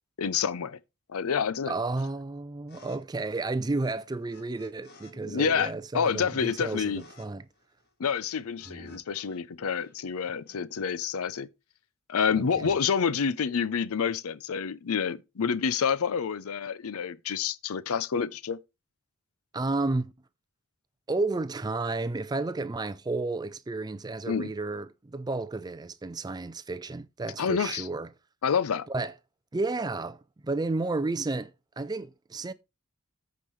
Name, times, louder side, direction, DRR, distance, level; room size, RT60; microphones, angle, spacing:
voice 1, 0.2-0.8 1.1-1.7 5.3-7.0 8.0-11.5 12.1-18.6 24.3-24.5 27.4-27.9 28.4-28.9, left 6 dB, 75° left, 0.5 m, -28 dB
voice 2, 1.7-7.5 8.7-9.0 12.3-12.7 19.5-20.1 21.1-28.1 28.9-29.1 29.5-32.5, right 3 dB, 20° right, 0.4 m, -32 dB
Sunny Day, 2.7-3.0 3.2-5.1 5.4-9.4 9.7-10.9, left 3 dB, 45° left, 1.6 m, -57 dB
14.0 x 5.2 x 3.1 m
head